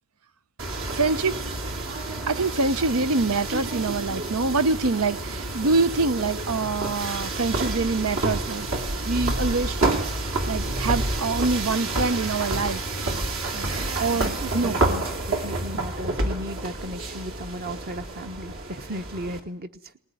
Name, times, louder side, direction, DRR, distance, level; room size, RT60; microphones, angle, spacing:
sound 1, 0.6-19.4, right 2 dB, 65° right, 2.8 m, -29 dB
voice 1, 0.9-1.4 2.3-8.7 9.0-9.8 10.5-12.8 13.5-13.7 14.0-14.8, right 3 dB, 80° right, 0.9 m, -25 dB
voice 2, 14.1-19.9, equal, 45° right, 1.2 m, -36 dB
20.5 x 19.0 x 9.4 m
head